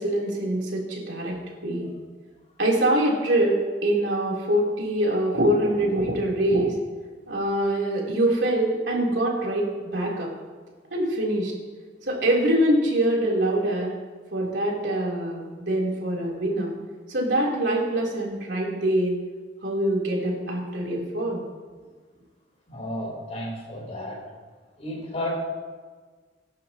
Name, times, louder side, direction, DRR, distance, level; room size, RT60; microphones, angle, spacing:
voice 1, 0.0-1.9 2.6-6.8 7.3-10.3 10.9-11.5 12.0-13.9 14.3-16.7 17.1-19.1 19.6-21.4, right 1 dB, 65° right, -3 dB, 3.7 m, -24 dB
voice 2, 22.7-24.2 24.8-25.3, left 1 dB, 35° left, -2 dB, 4.1 m, -33 dB
25.5 x 11.5 x 3.1 m, 1.5 s
head